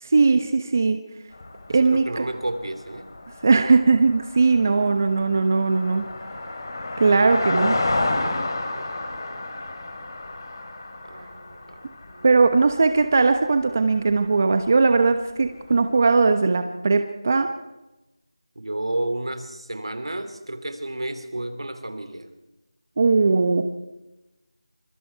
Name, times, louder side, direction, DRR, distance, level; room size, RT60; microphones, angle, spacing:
voice 1, 0.0-1.0 1.7-2.2 3.4-6.1 7.0-7.7 12.2-17.5 23.0-23.6, right 4 dB, 30° right, 8 dB, 1.0 m, -19 dB
sound 1, 1.3-14.3 14.6-14.7 15.0-15.1, left 2 dB, 45° left, 3.3 m, -31 dB
voice 2, 1.9-3.1 8.7-9.0 11.0-11.8 12.1-12.3 18.5-22.3, right 1 dB, 85° right, 9 dB, 3.3 m, -31 dB
25.5 x 22.5 x 4.6 m, 1.0 s
figure-of-eight pair, 175°, 3 cm